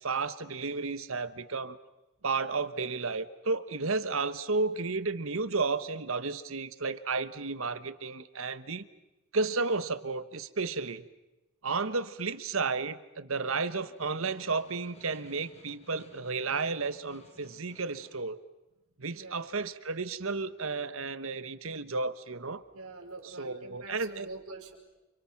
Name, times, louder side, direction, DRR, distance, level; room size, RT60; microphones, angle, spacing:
voice 1, 0.0-1.8 2.2-8.8 9.3-11.0 11.6-18.4 19.0-22.6 23.4-24.3, right 4 dB, 70° right, 13 dB, 1.3 m, -32 dB
Snare drum, 13.3-18.3, left 1 dB, 30° left, 3.4 m, -57 dB
voice 2, 19.1-19.5 22.7-24.7, right 2 dB, 90° right, 1 dB, 5.5 m, -45 dB
30.0 x 29.0 x 6.0 m, 1.0 s
head